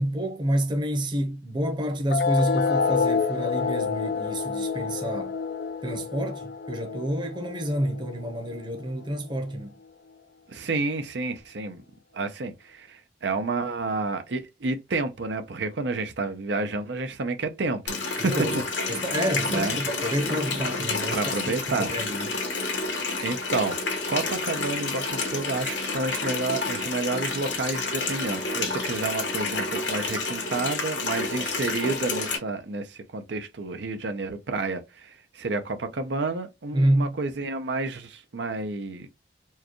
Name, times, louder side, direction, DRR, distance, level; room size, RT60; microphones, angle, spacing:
voice 1, 0.0-5.3 5.8-9.8 18.2-18.6 18.9-22.3 36.7-37.2, right 1 dB, 25° right, 0.8 m, -28 dB
sound 1, 2.1-9.1, left 5 dB, 60° left, 0.4 m, -28 dB
voice 2, 10.5-11.8 12.1-18.6 18.9-19.0 19.5-19.8 21.1-21.9 23.2-23.8 24.1-39.1, right 3 dB, 75° right, 0.6 m, -30 dB
Water tap faucet, 17.9-32.4, left 3 dB, 85° left, 1.4 m, -29 dB
4.5 x 2.3 x 3.0 m
head